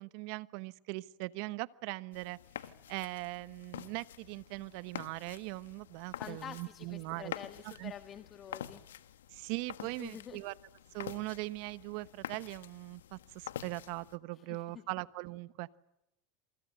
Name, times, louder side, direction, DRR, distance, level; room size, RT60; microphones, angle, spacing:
voice 1, 0.0-7.3 7.6-7.9 9.3-10.5 10.9-15.8, right 22 dB, 65° right, 17 dB, 1.0 m, -40 dB
sound 1, 2.1-14.2, left 10 dB, 85° left, 1.4 m, -47 dB
voice 2, 6.1-8.8 9.8-10.4 14.3-14.8, left 9 dB, 35° left, 8 dB, 1.7 m, -48 dB
28.5 x 24.0 x 7.8 m, 0.86 s
hypercardioid pair, 100°, 0 cm